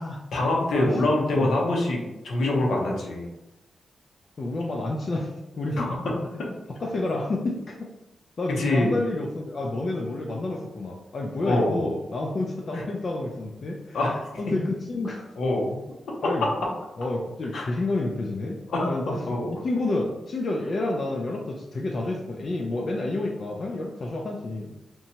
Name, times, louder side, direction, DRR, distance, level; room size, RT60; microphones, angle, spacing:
voice 1, 0.3-3.2 5.7-6.0 8.5-8.9 11.5-11.8 12.7-12.8 13.9-14.1 14.5-14.6 15.4-15.6 17.5-17.7 18.7-18.9 19.3-19.5, left 2 dB, 85° left, -2 dB, 0.7 m, -25 dB
voice 2, 1.3-1.7 4.4-5.9 6.8-7.9 8.4-14.0 14.4-15.3 16.2-16.5 17.0-24.7, left 2 dB, 50° left, 0 dB, 0.3 m, -29 dB
2.8 x 2.2 x 2.8 m, 0.99 s
cardioid pair, 80°, 0 cm